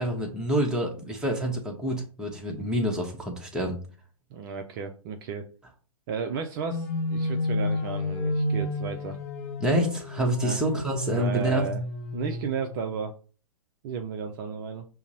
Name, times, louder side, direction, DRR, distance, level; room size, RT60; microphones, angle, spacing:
voice 1, 0.0-3.8 9.6-11.6, right 1 dB, 5° right, 0 dB, 0.7 m, -27 dB
voice 2, 4.3-5.5 6.1-9.2 10.4-10.6 11.1-11.8 12.1-13.2 13.8-14.9, right 5 dB, 40° right, 5 dB, 0.4 m, -33 dB
sound 1, 6.7-12.9, left 1 dB, 35° left, 0.5 m, -31 dB
5.7 x 2.0 x 2.7 m, 0.38 s
hypercardioid pair, 125°, 18 cm